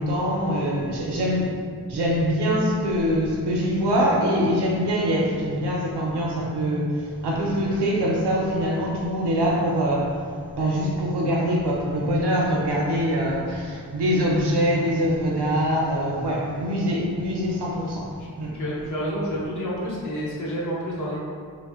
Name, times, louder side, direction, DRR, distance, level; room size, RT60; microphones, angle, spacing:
voice 1, 0.0-1.5 1.9-10.2 10.5-18.1 18.4-18.5, equal, 85° right, -3 dB, 0.5 m, -23 dB
voice 2, 18.5-21.2, equal, 50° left, -7 dB, 0.7 m, -29 dB
2.5 x 2.0 x 2.4 m, 2.1 s
wide cardioid pair, 55°, 39 cm